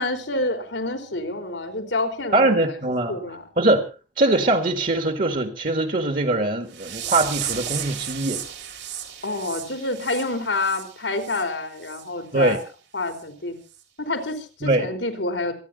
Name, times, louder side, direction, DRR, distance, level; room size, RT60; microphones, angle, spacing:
voice 1, 0.0-2.5 3.1-3.4 9.2-12.6 12.9-13.6 14.0-15.5, left 2 dB, 90° left, 6 dB, 3.4 m, -28 dB
voice 2, 2.3-3.2 3.6-3.8 4.2-8.4 12.3-12.6 14.6-14.9, right 2 dB, 45° right, 7 dB, 1.7 m, -22 dB
sound 1, 6.7-11.4 11.8-12.0 12.5-12.6 13.1-13.2 13.7-13.8, right 10 dB, 80° right, 3.7 m, -34 dB
27.0 x 10.0 x 4.0 m, 0.34 s
head